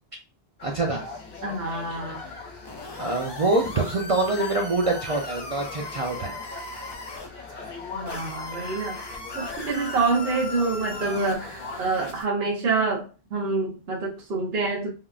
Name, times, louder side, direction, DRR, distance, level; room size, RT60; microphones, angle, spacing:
sound 1, 0.6-12.2, left 4 dB, 65° left, 1.2 m, -40 dB
voice 1, 0.6-1.0 3.0-6.3 8.5-8.8, right 2 dB, 55° right, 0 dB, 0.4 m, -25 dB
voice 2, 1.4-2.2 7.9-13.0 13.3-14.9, right 3 dB, 75° right, -3 dB, 1.2 m, -27 dB
sound 2, 2.6-7.3 8.1-12.2, left 2 dB, 35° left, 0.4 m, -38 dB
3.4 x 2.3 x 2.3 m, 0.32 s
omnidirectional pair, 1.0 m